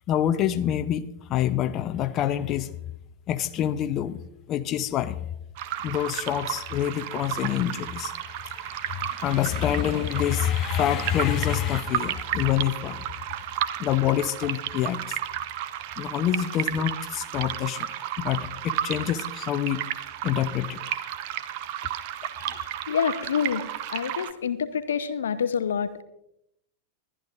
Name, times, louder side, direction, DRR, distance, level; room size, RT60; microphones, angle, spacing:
voice 1, 0.1-1.0 1.3-2.7 3.3-4.2 4.5-5.2 5.8-13.0 13.8-15.2 16.0-17.9 18.2-19.8 20.2-20.8 22.5-22.6, left 11 dB, 35° left, 12 dB, 0.6 m, -26 dB
sound 1, 5.6-24.3, right 11 dB, 50° right, 0.8 m, -33 dB
voice 2, 22.9-23.6 23.9-26.0, left 7 dB, 65° left, 12 dB, 0.8 m, -27 dB
22.0 x 11.5 x 2.5 m, 0.80 s
figure-of-eight pair, 90°, 0 cm